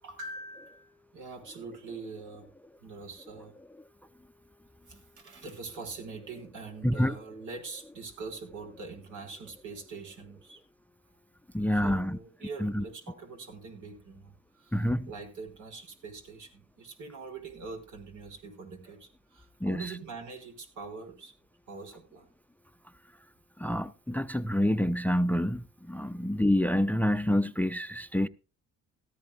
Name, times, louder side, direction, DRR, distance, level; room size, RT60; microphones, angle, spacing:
voice 1, 0.0-2.5 2.8-3.6 4.9-10.6 11.7-21.3 21.7-22.3, right 4 dB, 80° right, 5.4 m, -44 dB
voice 2, 6.8-7.2 11.5-12.2 12.6-12.8 14.7-15.1 19.6-19.9 23.6-28.3, left 1 dB, 5° left, 0.5 m, -27 dB
17.5 x 13.5 x 2.3 m
cardioid pair, 90°, 30 cm